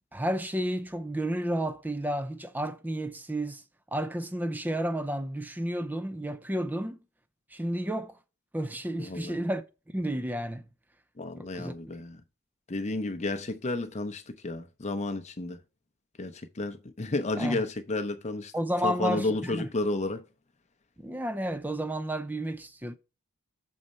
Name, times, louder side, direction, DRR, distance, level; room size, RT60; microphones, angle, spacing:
voice 1, 0.1-3.6 3.9-7.0 7.5-8.1 8.5-9.6 9.9-10.6 11.4-11.7 17.3-17.6 18.5-19.7 21.0-22.9, right 1 dB, 10° right, 0.4 m, -31 dB
voice 2, 9.0-9.4 11.2-12.2 12.7-15.6 16.2-18.5 18.8-20.2, left 2 dB, 30° left, 0.7 m, -32 dB
6.3 x 4.2 x 5.3 m
head